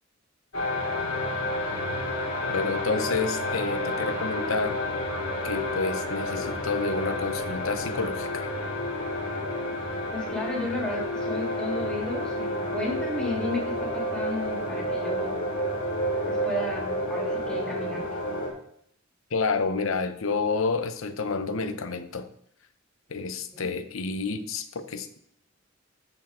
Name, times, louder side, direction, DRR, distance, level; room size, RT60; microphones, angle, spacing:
sound 1, 0.5-18.5, left 1 dB, 90° left, 2.4 m, -30 dB
voice 1, 2.5-4.8 5.4-8.5 19.3-22.3 23.1-25.2, left 4 dB, 70° left, 9 dB, 0.8 m, -29 dB
voice 2, 10.1-15.3 16.2-18.0 23.5-23.7, left 2 dB, 5° left, -4 dB, 2.6 m, -33 dB
13.5 x 4.9 x 3.6 m, 0.67 s
head